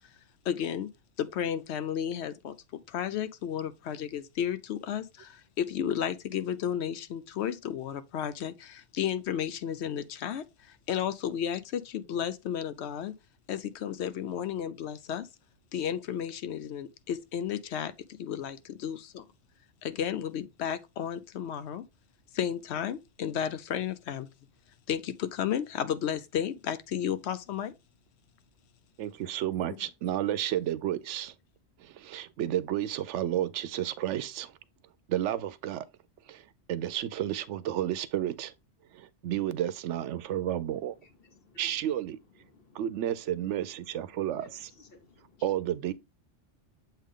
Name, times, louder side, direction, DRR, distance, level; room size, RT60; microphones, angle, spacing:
voice 1, 0.4-0.9 1.2-2.5 2.9-13.1 13.5-15.3 15.7-17.9 18.2-19.2 19.8-21.8 22.3-24.3 24.9-27.7, left 9 dB, 70° left, 0.8 m, -33 dB
voice 2, 29.0-31.3 31.8-34.6 35.1-35.9 36.3-38.5 38.9-41.0 41.6-42.2 42.7-44.7 45.4-45.9, right 12 dB, 85° right, 0.9 m, -31 dB
voice 3, 41.0-41.7 42.4-42.8 44.4-45.5, left 2 dB, 55° left, 1.4 m, -56 dB
7.4 x 3.5 x 3.6 m
omnidirectional pair, 1.2 m